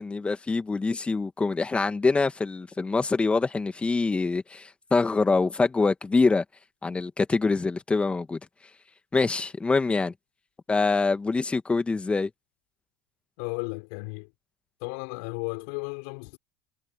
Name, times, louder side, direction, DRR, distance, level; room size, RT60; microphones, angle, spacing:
voice 1, 0.0-6.4 6.8-8.4 9.1-10.1 10.7-12.3, left 3 dB, 20° left, 2.3 m, -25 dB
voice 2, 13.4-14.3 14.8-16.4, left 36 dB, 65° left, 4.2 m, -34 dB
hypercardioid pair, 75°, 6 cm